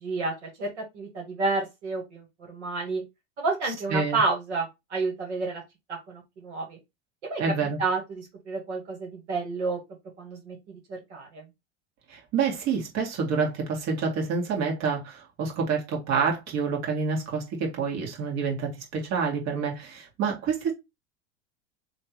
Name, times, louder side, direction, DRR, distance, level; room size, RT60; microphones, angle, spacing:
voice 1, 0.0-3.0 3.4-5.6 5.9-6.8 7.2-7.4 7.8-9.8 10.2-11.4, right 3 dB, 80° right, 1.8 m, -30 dB
voice 2, 7.4-7.8 12.1-20.7, right 5 dB, 50° right, 2.0 m, -28 dB
3.2 x 2.8 x 4.4 m
hypercardioid pair, 90°, 34 cm